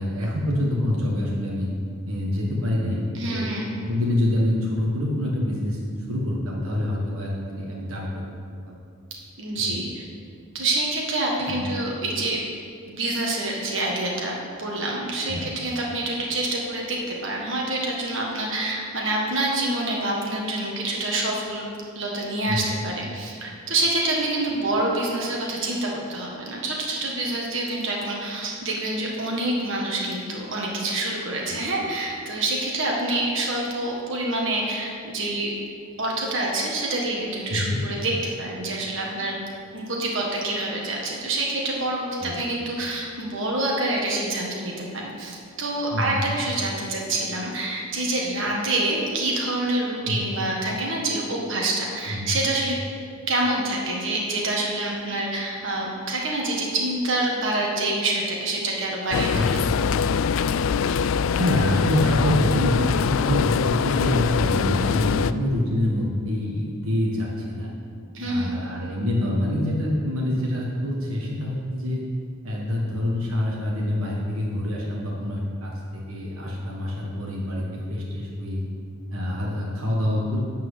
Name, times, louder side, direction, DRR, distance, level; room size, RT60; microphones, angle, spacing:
voice 1, 0.0-1.7 2.0-3.5 3.8-5.8 6.1-8.2 8.7-8.8 9.7-9.8 11.5-11.7 15.3-15.5 22.5-22.8 31.5-31.6 37.5-37.8 42.2-42.4 45.9-46.2 50.0-50.2 52.1-52.3 59.3-59.7 61.4-67.7 68.2-72.0 72.4-78.6 79.1-80.4, left 1 dB, 75° right, -3 dB, 1.5 m, -26 dB
voice 2, 3.1-3.7 9.4-10.0 10.5-12.4 12.9-21.7 21.9-35.5 36.0-39.4 39.7-52.7 53.3-59.6 68.1-68.5, right 2 dB, 60° right, -2 dB, 1.6 m, -27 dB
sound 1, 59.1-65.3, left 6 dB, 65° left, 0.3 m, -23 dB
11.5 x 4.6 x 7.9 m, 2.3 s
head